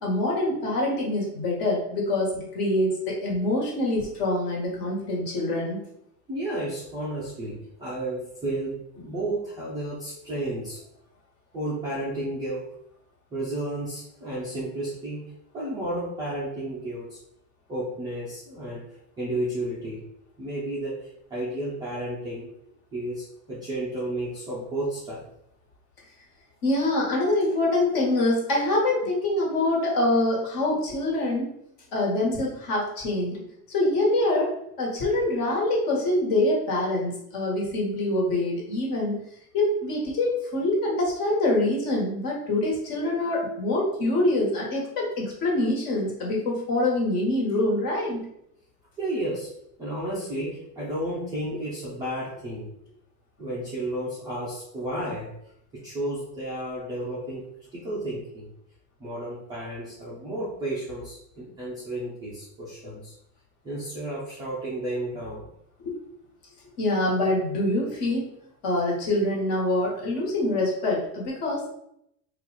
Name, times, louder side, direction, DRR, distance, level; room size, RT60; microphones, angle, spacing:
voice 1, 0.0-5.8 26.6-31.5 31.9-33.4 33.7-34.5 34.8-39.2 39.5-48.2 65.8-65.9 66.8-68.3 68.6-71.7, left 1 dB, 45° left, -2 dB, 1.5 m, -25 dB
voice 2, 6.3-10.8 11.5-12.8 13.3-15.2 15.5-17.2 17.7-20.1 20.4-22.5 22.9-25.2 49.0-49.5 49.8-52.7 53.4-55.3 55.7-58.5 59.0-63.1 63.6-65.4, right 1 dB, 10° right, -8 dB, 0.3 m, -32 dB
4.3 x 2.4 x 3.9 m, 0.76 s
supercardioid pair, 165°, 45 cm